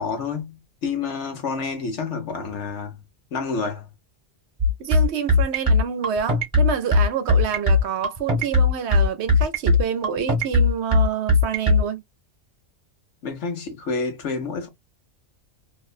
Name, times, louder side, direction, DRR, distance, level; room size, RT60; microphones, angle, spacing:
voice 1, 0.0-3.0 3.3-3.9 13.2-14.7, left 4 dB, 75° left, 1.2 m, -29 dB
sound 1, 4.6-11.8, left 2 dB, 30° right, 1.1 m, -17 dB
voice 2, 4.8-12.0, right 7 dB, 70° right, 0.8 m, -27 dB
2.9 x 2.1 x 2.3 m
omnidirectional pair, 1.2 m